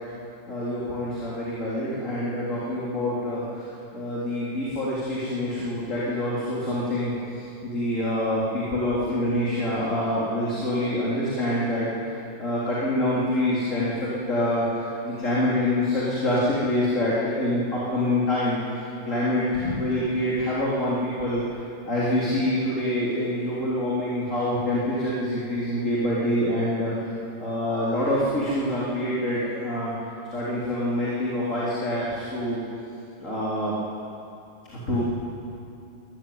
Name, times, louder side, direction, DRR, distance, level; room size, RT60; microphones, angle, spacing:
voice 1, 0.5-18.6 19.0-21.6 21.9-29.9 30.3-32.6 33.2-33.7 34.7-35.0, left 1 dB, 35° left, -8 dB, 4.0 m, -26 dB
22.0 x 14.5 x 9.4 m, 2.7 s
omnidirectional pair, 2.4 m